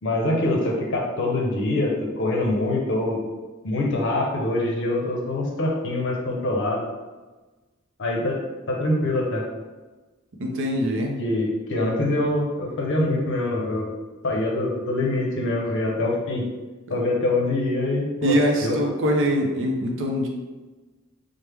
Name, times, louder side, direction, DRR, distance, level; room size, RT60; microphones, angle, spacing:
voice 1, 0.0-3.2 3.6-6.8 8.0-8.4 8.7-9.4 11.2-13.9 14.2-16.5 16.9-18.9, left 2 dB, 60° left, 0 dB, 0.6 m, -24 dB
voice 2, 10.4-11.2 16.9-17.0 18.2-20.3, equal, 65° right, 1 dB, 0.5 m, -23 dB
3.2 x 2.0 x 3.3 m, 1.2 s
head